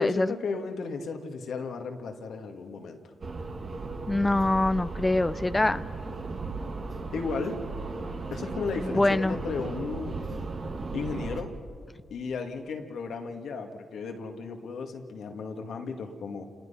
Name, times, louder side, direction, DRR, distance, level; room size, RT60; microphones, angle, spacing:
voice 1, 0.0-3.0 7.1-7.6 8.3-10.2 10.9-11.5 12.1-16.4, left 4 dB, 75° left, 4 dB, 2.0 m, -34 dB
sound 1, 3.2-11.4, right 3 dB, 55° right, 2.1 m, -36 dB
voice 2, 4.1-5.8 8.9-9.4, left 2 dB, 20° left, 13 dB, 0.5 m, -24 dB
29.5 x 19.0 x 5.7 m, 2.1 s
supercardioid pair, 50°, 0 cm